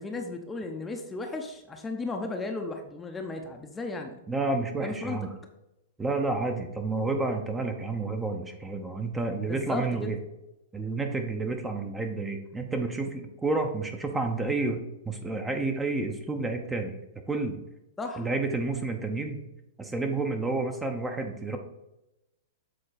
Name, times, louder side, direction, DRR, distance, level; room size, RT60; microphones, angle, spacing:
voice 1, 0.0-4.2 4.8-5.2 9.5-10.1 18.0-18.3, left 3 dB, 15° left, 3 dB, 0.8 m, -35 dB
voice 2, 4.3-5.3 6.0-10.2 10.7-16.9 17.3-17.6 18.2-19.4 19.8-21.6, right 3 dB, 10° right, 4 dB, 0.8 m, -30 dB
7.7 x 3.9 x 4.2 m, 0.93 s
hypercardioid pair, 115°, 0 cm